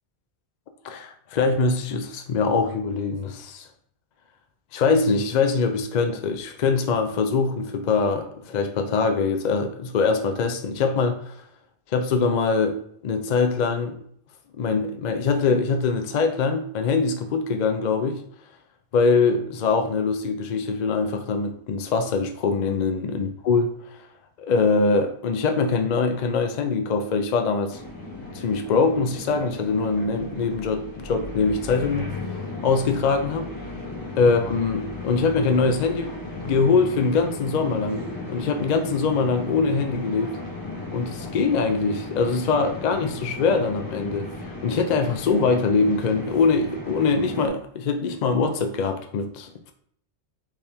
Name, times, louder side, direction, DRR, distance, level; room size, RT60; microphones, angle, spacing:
voice 1, 0.8-3.7 4.7-11.4 11.9-14.0 14.6-18.2 18.9-24.0 24.4-27.8 28.2-32.1 32.6-33.5 34.2-40.4 40.9-49.7, left 4 dB, 55° left, 0.5 m, -23 dB
sound 1, 27.7-47.5, left 2 dB, 20° left, 0.9 m, -36 dB
4.2 x 3.5 x 3.4 m
omnidirectional pair, 1.1 m